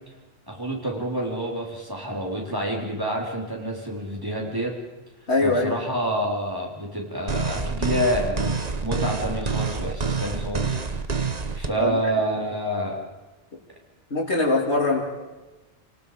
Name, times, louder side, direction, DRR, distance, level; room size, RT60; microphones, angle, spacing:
voice 1, 0.5-4.7 5.4-10.8 11.5-13.0, equal, 20° right, -2 dB, 4.4 m, -28 dB
voice 2, 5.3-5.7 11.8-12.0 14.1-15.0, left 2 dB, 90° left, -1 dB, 3.3 m, -22 dB
sound 1, 7.3-11.7, right 4 dB, 40° right, 1.2 m, -27 dB
28.5 x 18.5 x 5.2 m, 1.1 s
omnidirectional pair, 1.1 m